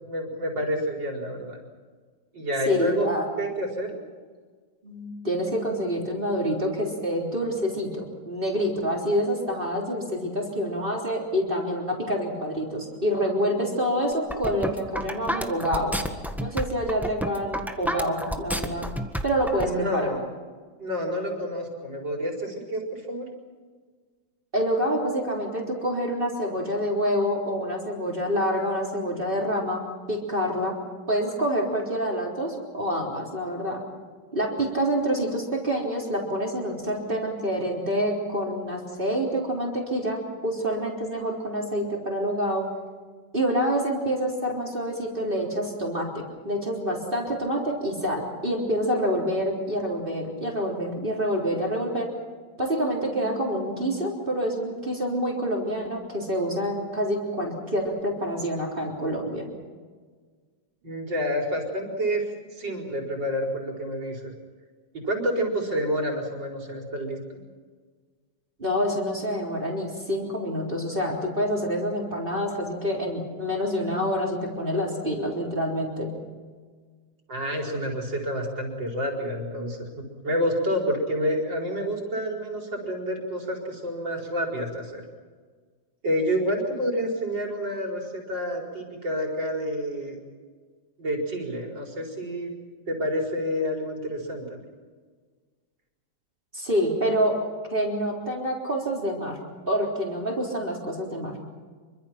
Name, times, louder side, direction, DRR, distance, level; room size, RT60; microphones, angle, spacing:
voice 1, 0.0-1.6 2.3-3.1 3.4-4.0 19.6-20.2 20.8-23.3 60.8-64.3 64.9-67.4 77.3-85.0 86.0-90.2 91.0-92.5 92.9-94.6, equal, 65° right, 3 dB, 5.4 m, -29 dB
voice 2, 2.7-3.2 4.8-15.9 16.4-18.9 19.2-20.1 24.5-30.8 31.1-33.8 34.3-42.7 43.3-52.1 52.6-59.5 68.6-76.1 96.5-97.4 97.7-99.4 99.7-101.4, equal, 25° right, -1 dB, 4.0 m, -27 dB
sound 1, 14.1-19.7, equal, ahead, 1.3 m, -30 dB
26.5 x 24.5 x 5.9 m, 1.5 s
omnidirectional pair, 2.1 m